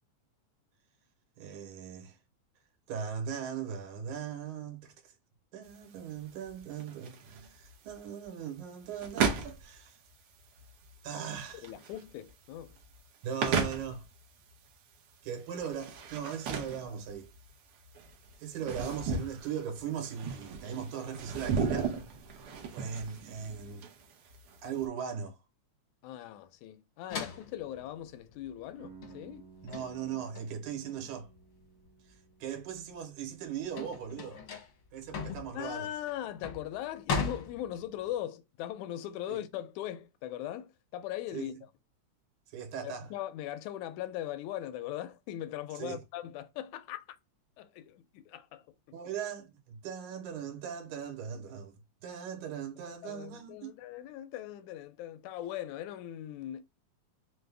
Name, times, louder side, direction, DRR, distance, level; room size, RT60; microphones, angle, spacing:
voice 1, 1.4-2.2 2.9-4.9 5.5-10.0 11.0-11.7 13.2-14.1 15.2-17.3 18.4-21.9 22.7-23.9 24.6-25.4 29.6-31.3 32.4-34.4 34.9-35.9 39.3-39.4 41.3-41.5 42.5-43.1 45.8-46.0 48.9-51.7 52.0-53.7, right 8 dB, 85° right, 2.4 m, -39 dB
sound 1, 5.6-24.8, right 5 dB, 70° right, 1.4 m, -36 dB
voice 2, 11.6-12.8 26.0-29.5 35.5-41.5 42.8-47.2 47.6-49.0 52.9-56.6, left 12 dB, 85° left, 1.9 m, -40 dB
sound 2, 27.1-32.1 32.5-38.1, left 5 dB, 65° left, 1.1 m, -39 dB
sound 3, 28.8-34.5, right 5 dB, 50° right, 0.9 m, -57 dB
5.2 x 2.1 x 3.3 m
omnidirectional pair, 3.4 m